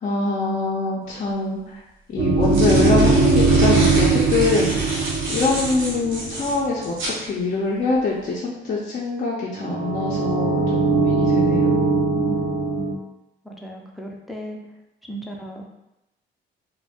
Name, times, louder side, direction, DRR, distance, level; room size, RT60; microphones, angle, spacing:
voice 1, 0.0-1.8 2.1-5.0 5.3-11.8, left 3 dB, 40° left, -5 dB, 0.6 m, -24 dB
sound 1, 1.1-1.2 2.2-7.2, right 1 dB, 80° right, 0.9 m, -30 dB
sound 2, 2.2-6.6 9.6-12.9, right 3 dB, 55° right, 0.5 m, -20 dB
voice 2, 12.7-13.1 13.4-14.6 15.1-15.7, right 1 dB, ahead, -1 dB, 0.5 m, -35 dB
2.4 x 2.1 x 3.5 m, 0.91 s
cardioid pair, 90°, 20 cm